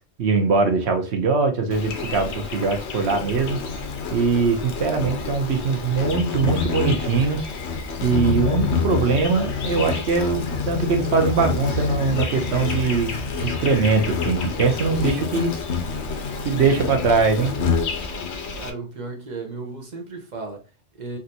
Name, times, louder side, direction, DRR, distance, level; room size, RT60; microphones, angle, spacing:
voice 1, 0.2-3.6 4.1-7.5 8.0-15.5 16.4-17.5, right 4 dB, 70° right, 1.1 m, -22 dB
Insect, 1.7-18.7, left 5 dB, 75° left, 0.9 m, -27 dB
voice 2, 18.6-21.2, right 3 dB, 45° right, 0.8 m, -35 dB
3.4 x 2.7 x 2.7 m
omnidirectional pair, 1.2 m